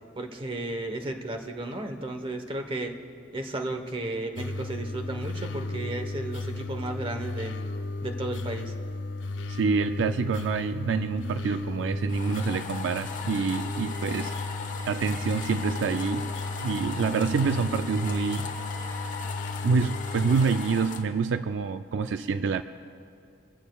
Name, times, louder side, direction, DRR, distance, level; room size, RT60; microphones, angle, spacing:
voice 1, 0.2-2.9 3.3-7.5 8.0-8.7, right 2 dB, 30° right, 5 dB, 1.0 m, -34 dB
sound 1, 4.4-20.4, left 2 dB, 70° left, 0.6 m, -34 dB
voice 2, 9.5-14.3 14.9-16.3 16.6-18.5 19.6-22.6, right 5 dB, 70° right, 10 dB, 0.4 m, -27 dB
sound 2, 12.1-21.0, left 5 dB, 40° left, 1.1 m, -38 dB
23.5 x 15.5 x 2.3 m, 2.5 s
head